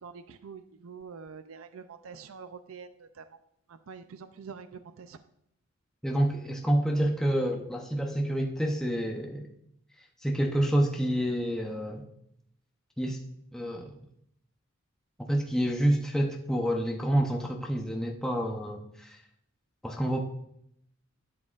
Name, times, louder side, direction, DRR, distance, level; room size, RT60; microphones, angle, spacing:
voice 1, 0.0-3.4 3.7-5.2, right 5 dB, 80° right, 11 dB, 0.5 m, -46 dB
voice 2, 6.0-9.5 10.2-12.0 13.0-13.2 13.5-14.0 15.2-19.2 19.8-20.2, right 1 dB, 5° left, 1 dB, 0.7 m, -28 dB
12.0 x 7.4 x 2.4 m, 0.73 s
head